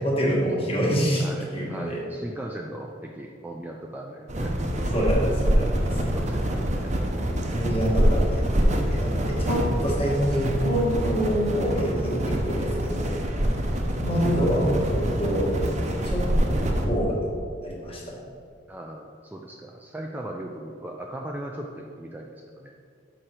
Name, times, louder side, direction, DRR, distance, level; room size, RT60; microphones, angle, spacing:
voice 1, 0.0-2.0 4.9-5.8 6.0-6.2 7.4-13.1 14.0-15.5 16.0-17.2 17.6-18.1, equal, 30° left, -3 dB, 1.4 m, -26 dB
voice 2, 1.2-4.5 4.9-5.7 6.0-6.9 18.7-22.7, right 1 dB, 10° right, 0 dB, 0.3 m, -38 dB
sound 1, 4.3-16.9, equal, 40° right, 0.7 m, -25 dB
6.6 x 5.0 x 4.4 m, 2.2 s
head